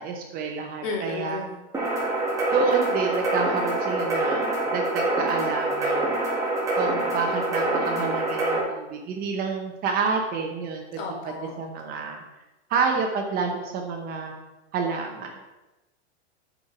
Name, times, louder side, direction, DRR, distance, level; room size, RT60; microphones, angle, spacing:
voice 1, 0.0-1.4 2.5-10.8 11.6-12.2 12.7-14.3 14.7-15.4, right 5 dB, 25° right, 2 dB, 0.7 m, -29 dB
voice 2, 0.8-1.6 11.0-11.5, left 3 dB, 50° left, -1 dB, 2.5 m, -32 dB
sound 1, 1.7-8.6, right 2 dB, 10° right, 1.5 m, -25 dB
7.9 x 4.5 x 5.7 m, 1.0 s
supercardioid pair, 150°, 36 cm